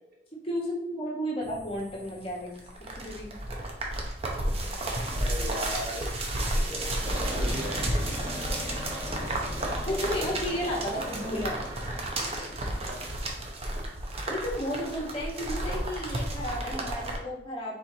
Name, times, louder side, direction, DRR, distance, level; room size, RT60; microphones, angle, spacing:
voice 1, 0.4-2.5 2.9-3.4 9.9-11.6 14.3-17.8, equal, 30° left, -4 dB, 1.2 m, -33 dB
sound 1, 1.4-17.2, right 1 dB, 35° right, 0.7 m, -32 dB
voice 2, 4.5-7.0 7.2-7.8 12.6-13.1, equal, 55° right, -5 dB, 1.8 m, -40 dB
sound 2, 7.0-13.2, equal, 15° right, 1.2 m, -37 dB
4.5 x 4.2 x 2.7 m, 0.73 s
head